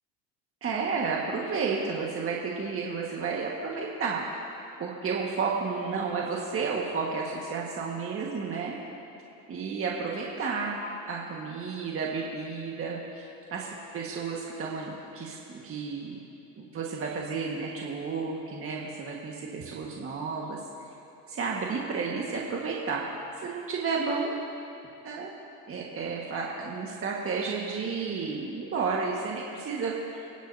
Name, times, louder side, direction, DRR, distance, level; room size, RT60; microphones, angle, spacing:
voice 1, 0.6-4.4 4.8-8.8 9.5-13.7 13.9-16.2 16.6-20.6 21.3-23.0 23.4-24.3 25.0-25.3 25.7-30.2, right 4 dB, 30° right, -2 dB, 1.6 m, -32 dB
29.5 x 10.0 x 2.8 m, 2.9 s
supercardioid pair, 115°, 42 cm